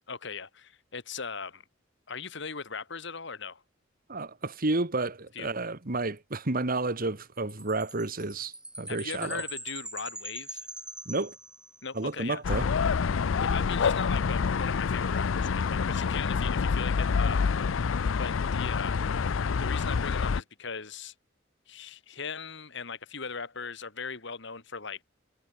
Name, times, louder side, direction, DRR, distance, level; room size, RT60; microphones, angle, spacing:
voice 1, 0.1-1.6 2.1-3.6 5.3-5.5 8.9-10.7 11.8-12.4 13.4-17.6 18.2-19.0 19.6-21.1 21.7-25.0, left 5 dB, 65° left, 2.5 m, -39 dB
voice 2, 4.1-8.5 8.8-9.4 11.1-11.3 12.0-12.7, right 2 dB, 50° right, 1.8 m, -31 dB
Chime, 7.5-12.0, right 1 dB, 5° right, 7.6 m, -42 dB
sound 1, 12.4-20.4, left 5 dB, 85° left, 0.5 m, -27 dB
head